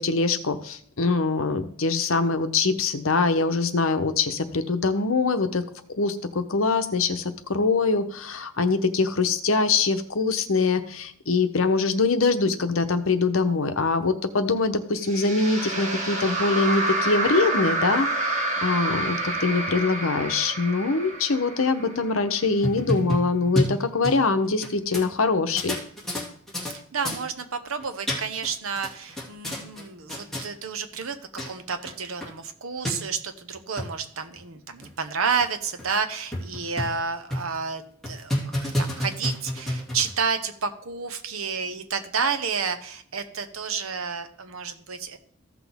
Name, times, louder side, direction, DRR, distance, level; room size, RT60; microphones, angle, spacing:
voice 1, 0.0-5.6 6.0-25.8, left 3 dB, 75° left, 9 dB, 0.9 m, -23 dB
sound 1, 15.0-22.3, right 2 dB, 35° right, 1.8 m, -28 dB
sound 2, 22.6-24.7 24.9-25.0 25.5-26.7 27.0-27.2 27.8-28.5 28.8-29.8 30.1-30.4 31.1-31.2 31.4-31.5 31.8-31.9 32.2-32.3 32.8-32.9 33.5-33.9 34.4-34.5 34.8-34.9 35.4-35.5 35.8-35.9 36.3-37.0 37.3-37.6 38.0-40.2, left 1 dB, ahead, 2.3 m, -29 dB
voice 2, 26.7-31.2 31.5-45.2, right 5 dB, 75° right, 9 dB, 0.9 m, -30 dB
14.5 x 6.1 x 3.5 m, 0.62 s
head